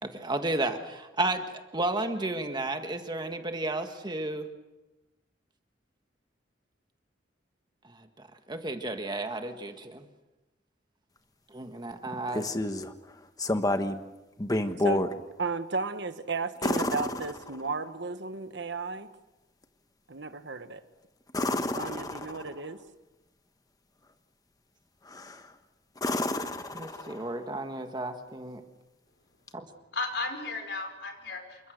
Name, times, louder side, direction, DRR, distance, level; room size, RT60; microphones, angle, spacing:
voice 1, 0.0-4.5 7.9-8.1 8.5-10.1 11.5-12.5 26.7-28.6 29.5-29.7, right 2 dB, 25° right, 6 dB, 1.7 m, -33 dB
sound 1, 12.1-12.9 13.4-14.0 14.4-15.1 16.6-17.9 21.3-22.6 25.1-25.5 26.0-27.4 29.5-29.6, left 1 dB, 20° left, 1.2 m, -30 dB
voice 2, 14.8-19.1 20.1-20.8 21.7-22.8, right 3 dB, 65° right, 10 dB, 1.4 m, -34 dB
voice 3, 29.8-31.7, left 3 dB, 65° left, 5 dB, 5.4 m, -35 dB
28.5 x 24.0 x 6.6 m, 1.1 s
head